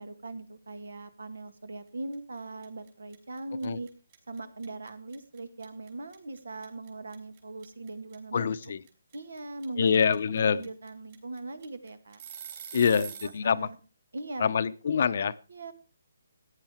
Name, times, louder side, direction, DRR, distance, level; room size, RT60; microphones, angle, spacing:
voice 1, 0.0-3.9 4.3-8.6 9.1-10.0 10.3-12.2 12.9-13.8 14.1-14.5 15.5-15.7, right 2 dB, 85° right, 12 dB, 1.9 m, -40 dB
sound 1, 2.1-2.4 2.6-13.4, right 8 dB, 35° right, 3.8 m, -45 dB
voice 2, 8.3-8.8 9.8-10.7 12.7-13.7 14.4-15.4, left 6 dB, 50° left, 15 dB, 0.7 m, -25 dB
14.5 x 9.9 x 4.5 m, 0.33 s
hypercardioid pair, 160°, 0 cm